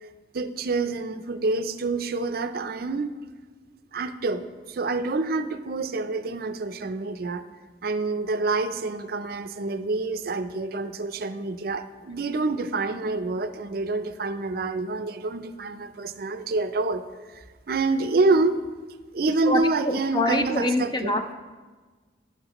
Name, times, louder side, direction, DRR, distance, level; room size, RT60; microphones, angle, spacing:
voice 1, 0.3-3.1 3.9-7.4 7.8-18.6 19.1-21.1, right 3 dB, 55° right, 10 dB, 0.5 m, -27 dB
voice 2, 19.5-21.3, left 1 dB, 25° left, 7 dB, 0.5 m, -25 dB
16.5 x 5.8 x 3.0 m, 1.4 s
head